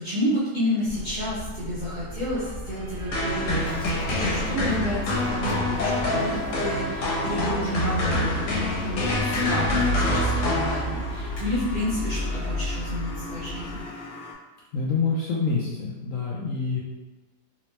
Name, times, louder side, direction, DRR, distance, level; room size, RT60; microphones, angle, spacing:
voice 1, 0.0-3.8 4.1-13.9, left 1 dB, 45° right, -11 dB, 0.6 m, -30 dB
sound 1, 0.9-13.8, equal, 30° right, 1.0 m, -33 dB
sound 2, 3.1-11.2, left 2 dB, 90° left, 1.4 m, -26 dB
sound 3, 3.3-14.3, left 2 dB, 40° left, 1.0 m, -41 dB
voice 2, 14.7-16.8, left 4 dB, 70° left, -4 dB, 0.8 m, -26 dB
3.0 x 2.9 x 3.1 m, 1.2 s
omnidirectional pair, 1.8 m